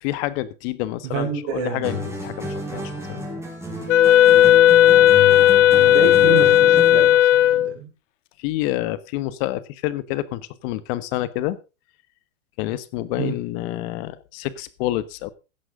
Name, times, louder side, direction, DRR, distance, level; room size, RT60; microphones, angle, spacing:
voice 1, 0.0-3.3 8.4-11.6 12.6-15.3, left 15 dB, 50° left, 16 dB, 1.5 m, -28 dB
voice 2, 1.0-2.1 5.7-7.9 13.2-13.3, right 6 dB, 50° right, -2 dB, 5.2 m, -29 dB
sound 1, 1.8-7.2, left 1 dB, 5° right, 4.9 m, -31 dB
Wind instrument woodwind instrument, 3.9-7.7, left 12 dB, 70° left, 1.1 m, -14 dB
16.0 x 11.0 x 3.8 m, 0.30 s
hypercardioid pair, 120°, 39 cm